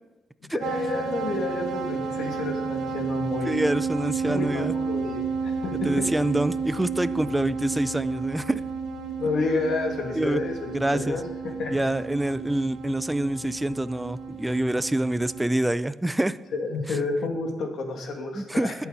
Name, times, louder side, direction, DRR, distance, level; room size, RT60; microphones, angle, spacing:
voice 1, 0.5-3.6 4.2-6.1 9.2-11.7 16.5-18.7, left 3 dB, 65° left, 2 dB, 2.3 m, -30 dB
sound 1, 0.6-15.5, right 5 dB, 85° right, 1.3 m, -32 dB
voice 2, 3.4-4.7 5.8-8.6 10.1-10.4 10.7-11.2 11.7-16.4 18.3-18.7, right 1 dB, 10° right, 15 dB, 0.4 m, -26 dB
19.5 x 7.1 x 4.1 m, 1.1 s
cardioid pair, 130°, 0 cm